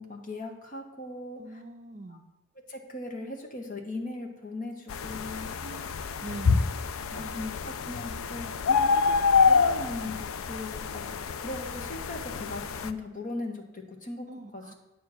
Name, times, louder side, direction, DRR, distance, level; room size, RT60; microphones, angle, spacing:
voice 1, 0.0-1.6 2.1-2.2 2.7-5.5 7.1-9.1 9.5-10.2 10.5-14.3 14.5-14.7, left 2 dB, 40° left, 3 dB, 1.3 m, -39 dB
voice 2, 1.4-2.2 5.6-6.7 7.1-7.6 14.3-14.7, right 2 dB, 35° right, 7 dB, 0.6 m, -43 dB
sound 1, 4.9-12.9, left 5 dB, 85° left, 0.5 m, -27 dB
9.2 x 4.6 x 7.7 m, 0.95 s
head